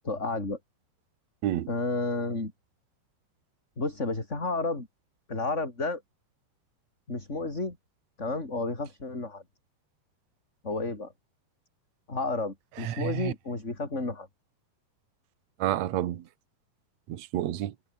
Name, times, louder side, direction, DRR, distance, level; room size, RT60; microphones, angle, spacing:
voice 1, 0.0-0.6 1.7-2.5 3.8-4.9 5.3-6.0 7.1-7.8 8.2-9.4 10.6-11.1 12.1-14.3, left 3 dB, 15° left, 4.3 m, -31 dB
voice 2, 12.8-13.3 15.6-16.2 17.1-17.7, right 12 dB, 65° right, 1.8 m, -29 dB
omnidirectional pair, 4.9 m